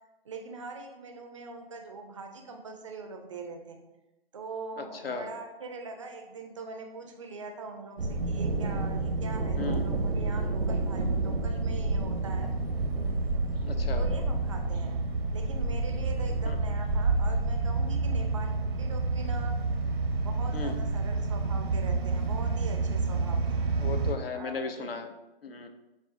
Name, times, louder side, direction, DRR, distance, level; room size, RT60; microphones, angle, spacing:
voice 1, 0.2-3.8 4.3-12.5 13.9-15.0 15.3-19.6 20.2-23.7 24.3-25.0, right 3 dB, 35° right, 4 dB, 0.4 m, -42 dB
voice 2, 4.8-5.3 9.6-9.9 13.6-14.0 16.4-16.6 20.5-20.8 23.8-25.1 25.4-25.7, left 4 dB, 75° left, 7 dB, 0.6 m, -36 dB
sound 1, 8.0-24.1, right 3 dB, 85° right, 0.7 m, -29 dB
7.0 x 2.4 x 2.5 m, 0.99 s
figure-of-eight pair, 140°, 29 cm